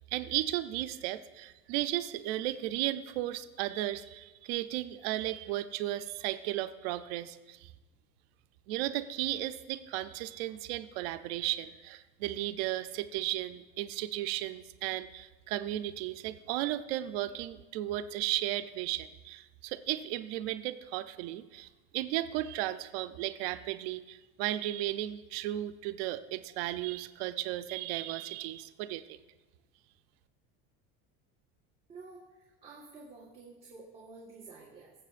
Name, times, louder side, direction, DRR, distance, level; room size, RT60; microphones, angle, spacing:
voice 1, 0.1-7.7 8.7-21.7 21.9-29.2, right 14 dB, 90° right, 10 dB, 0.5 m, -35 dB
voice 2, 31.9-34.9, right 3 dB, 20° right, -5 dB, 1.5 m, -50 dB
21.5 x 7.6 x 2.5 m, 1.1 s
cardioid pair, 155°, 30 cm